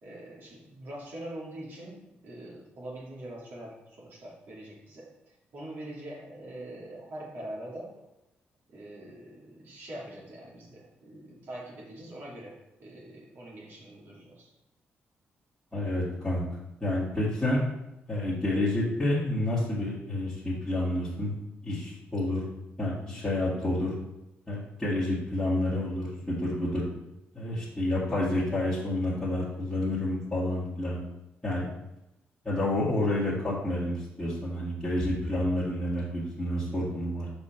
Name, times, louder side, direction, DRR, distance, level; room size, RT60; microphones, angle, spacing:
voice 1, 0.0-7.9 8.7-14.5, right 1 dB, 65° right, -5 dB, 2.7 m, -43 dB
voice 2, 15.7-16.4 16.8-17.6 18.1-21.4 21.6-22.4 22.8-23.9 24.5-26.8 27.3-31.0 31.4-31.7 32.4-37.3, left 1 dB, 10° left, -11 dB, 1.9 m, -29 dB
7.2 x 5.4 x 4.4 m, 0.92 s
cardioid pair, 145°, 4 cm